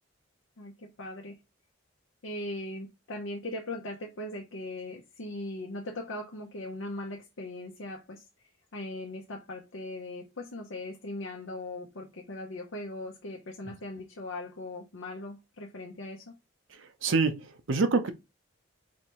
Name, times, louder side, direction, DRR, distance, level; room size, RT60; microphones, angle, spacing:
voice 1, 0.6-1.4 2.2-8.2 8.7-16.3, left 2 dB, 80° left, 0.8 m, -39 dB
voice 2, 17.0-18.1, right 4 dB, 75° right, 0.7 m, -26 dB
4.3 x 3.3 x 3.0 m
head